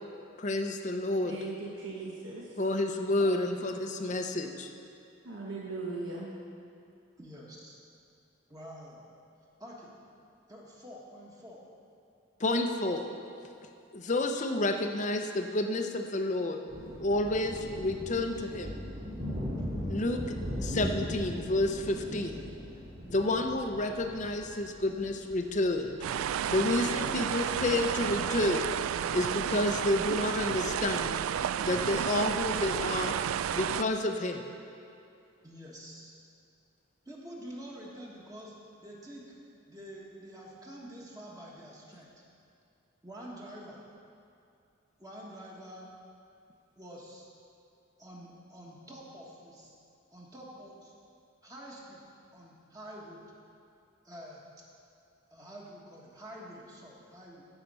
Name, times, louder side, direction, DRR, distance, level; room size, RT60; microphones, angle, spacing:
voice 1, 0.4-1.3 2.6-4.7 12.4-13.1 13.9-16.6 17.0-18.8 19.8-20.2 20.6-22.5 23.1-26.0 26.5-28.7 29.1-31.2 31.6-33.1 33.5-34.4, left 2 dB, 35° left, 5 dB, 0.6 m, -30 dB
voice 2, 1.2-2.6 5.2-6.3, right 3 dB, 70° right, -4 dB, 1.2 m, -39 dB
voice 3, 3.2-3.7 7.2-7.8 8.5-9.1 9.6-9.9 10.5-11.6 35.4-36.2 37.0-38.5 38.8-39.3 39.7-42.1 43.0-43.9 45.0-45.9 46.8-47.3 48.0-49.8 50.1-50.9 51.4-52.0 52.3-53.2 54.0-54.4 55.3-57.5, equal, 20° right, -4 dB, 1.4 m, -47 dB
sound 1, 16.7-32.7, equal, 45° right, 3.0 m, -40 dB
sound 2, 26.0-33.8, right 9 dB, 90° right, 0.3 m, -31 dB
15.0 x 5.8 x 5.5 m, 2.6 s
head